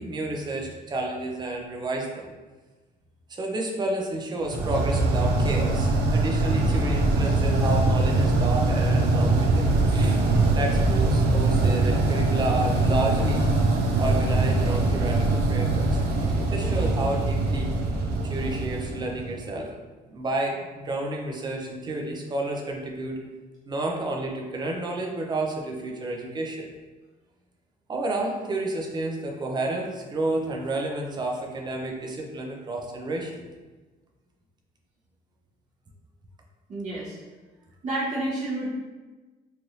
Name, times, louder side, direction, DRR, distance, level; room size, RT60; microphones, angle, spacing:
voice 1, 0.0-2.3 3.3-10.2 10.5-13.4 14.0-16.0 16.5-17.7 18.2-19.7 20.1-23.2 23.7-26.7 27.9-33.5, right 2 dB, 25° right, 1 dB, 0.5 m, -30 dB
sound 1, 4.5-19.5, right 2 dB, 80° right, 0.5 m, -23 dB
voice 2, 36.7-37.2 37.8-38.7, right 2 dB, 45° right, -10 dB, 1.0 m, -29 dB
3.1 x 2.5 x 2.7 m, 1.3 s
cardioid pair, 110°, 17 cm